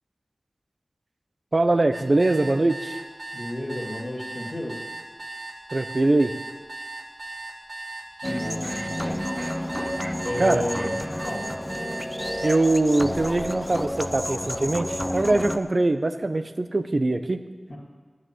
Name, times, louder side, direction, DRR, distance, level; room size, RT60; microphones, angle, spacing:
voice 1, 1.5-3.0 5.7-6.3 10.4-10.6 12.4-17.4, right 2 dB, 55° right, 10 dB, 0.7 m, -22 dB
sound 1, 1.9-12.5, right 2 dB, 90° right, 1.7 m, -37 dB
voice 2, 3.3-4.8 8.2-9.2 10.2-11.5 17.7-17.8, left 1 dB, 40° left, -6 dB, 2.6 m, -32 dB
sound 2, 8.2-15.6, equal, 15° left, 0.6 m, -30 dB
10.5 x 6.5 x 9.0 m, 1.4 s
wide cardioid pair, 55°, 0 cm